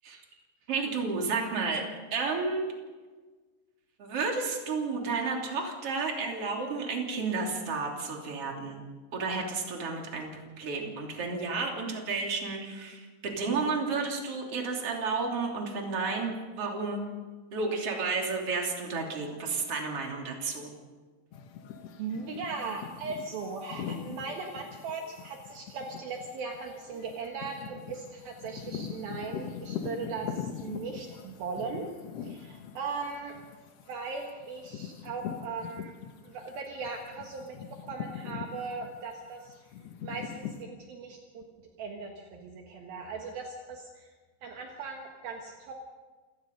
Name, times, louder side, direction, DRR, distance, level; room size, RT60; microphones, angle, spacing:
voice 1, 0.7-1.8 2.1-2.7 4.0-8.8 9.1-10.3 10.6-17.1 17.5-20.7, right 4 dB, 35° right, 1 dB, 3.7 m, -32 dB
sound 1, 21.3-36.5 36.8-40.6, left 8 dB, 90° left, 1.4 m, -42 dB
voice 2, 22.0-31.9 32.2-33.3 33.9-35.9 36.2-37.6 37.8-39.5 40.0-41.4 41.8-44.1 44.4-45.7, right 4 dB, 65° right, 1 dB, 3.2 m, -38 dB
28.0 x 18.0 x 5.4 m, 1.4 s
omnidirectional pair, 4.8 m